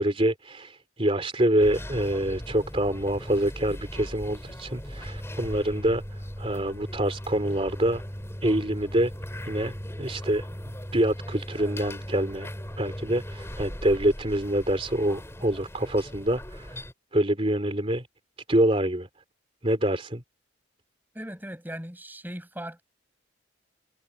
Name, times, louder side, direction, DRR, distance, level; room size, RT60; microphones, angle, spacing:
voice 1, 0.0-8.0 8.4-9.1 9.4-12.5 12.8-16.8 17.1-18.1 18.5-19.1 19.6-20.2, right 1 dB, 30° right, 3.2 m, -26 dB
sound 1, 1.6-16.9, equal, 15° left, 4.7 m, -38 dB
voice 2, 21.1-22.8, right 1 dB, 10° right, 7.7 m, -38 dB
head